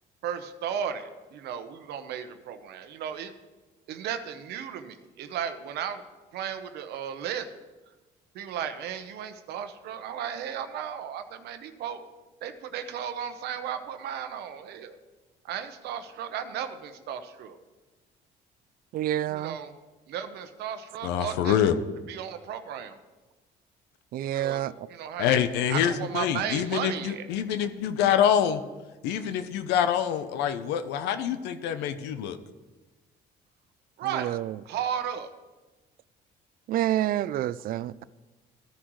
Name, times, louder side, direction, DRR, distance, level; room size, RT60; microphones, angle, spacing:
voice 1, 0.2-3.3 3.9-6.0 6.3-7.6 8.3-12.1 12.4-14.9 15.4-17.6 19.3-19.8 20.1-21.6 22.1-23.0 24.3-24.6 24.9-25.3 25.7-27.3 29.2-29.3 34.0-34.3 34.6-35.3, right 8 dB, 75° right, 1.0 m, -35 dB
voice 2, 18.9-19.6 24.1-24.9 34.1-34.6 36.7-38.0, right 12 dB, 60° right, 0.4 m, -28 dB
voice 3, 21.0-21.8 25.2-28.6 29.0-32.4, left 9 dB, 90° left, 0.7 m, -26 dB
15.5 x 9.9 x 3.2 m
cardioid pair, 110°, 17 cm